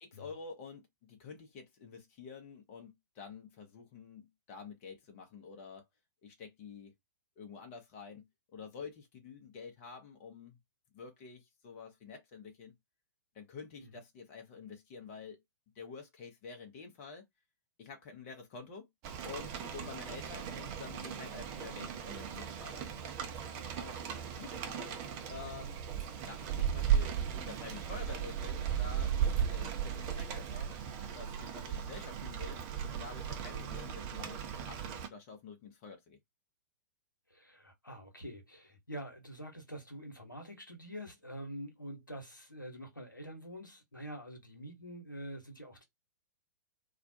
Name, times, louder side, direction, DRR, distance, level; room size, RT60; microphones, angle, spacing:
voice 1, 0.0-5.8 6.2-6.9 7.4-8.2 8.5-10.6 10.9-12.7 13.3-15.4 15.7-17.2 17.8-18.9 19.2-22.9 23.7-24.0 24.3-25.0 25.3-25.8 26.2-30.7 31.1-36.2, left 5 dB, 35° left, 0.7 m, -49 dB
Rain, 19.0-35.1, right 8 dB, 30° right, 0.5 m, -36 dB
voice 2, 37.3-45.8, equal, 90° left, 0.9 m, -46 dB
2.4 x 2.1 x 2.7 m
figure-of-eight pair, 110°, 10 cm